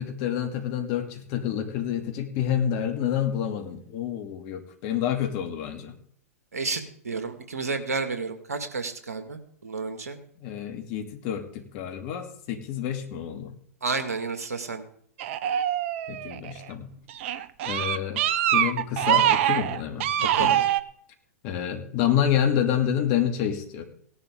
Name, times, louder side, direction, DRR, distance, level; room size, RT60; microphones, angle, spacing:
voice 1, 0.0-6.0 10.4-13.5 16.1-16.9 17.6-18.2 18.5-20.6 21.4-23.8, left 9 dB, 45° left, 5 dB, 2.5 m, -28 dB
voice 2, 6.5-10.2 13.8-14.8 20.2-20.5, right 4 dB, 85° right, 7 dB, 2.0 m, -31 dB
sound 1, 15.2-16.6 17.1-20.8, right 11 dB, 55° right, 0.9 m, -24 dB
18.0 x 11.0 x 3.7 m, 0.62 s
hypercardioid pair, 110°, 8 cm